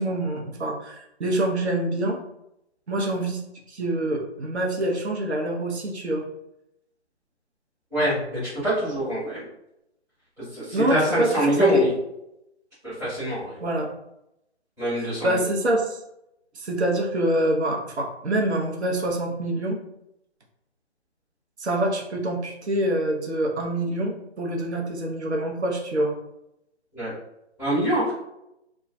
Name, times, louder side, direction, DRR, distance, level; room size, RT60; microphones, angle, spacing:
voice 1, 0.0-2.2 2.9-3.4 3.7-6.2 10.7-11.8 13.6-13.9 15.0-16.0 16.5-19.8 21.6-26.1, right 1 dB, 70° right, 0 dB, 0.7 m, -25 dB
voice 2, 7.9-9.4 10.4-11.9 12.8-13.6 14.8-15.5 26.9-27.1 27.6-28.1, right 1 dB, 5° right, -15 dB, 0.9 m, -24 dB
2.2 x 2.1 x 2.6 m, 0.84 s
figure-of-eight pair, 155°, 34 cm